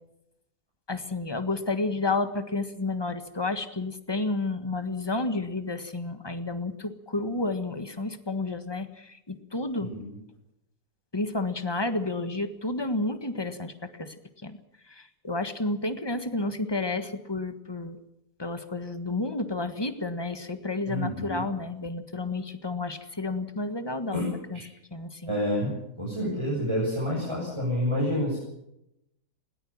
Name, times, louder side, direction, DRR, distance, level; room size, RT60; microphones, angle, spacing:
voice 1, 0.9-9.9 11.1-14.1 14.4-14.6 14.9-18.0 18.4-24.2 24.5-24.6 24.9-25.3, left 2 dB, 15° left, 9 dB, 1.4 m, -31 dB
voice 2, 9.8-10.2 20.9-21.4 24.1-24.3 24.5-24.6 25.3-25.7 26.0-28.4, left 1 dB, 15° right, -4 dB, 7.3 m, -28 dB
21.0 x 18.5 x 7.3 m, 0.83 s
omnidirectional pair, 1.7 m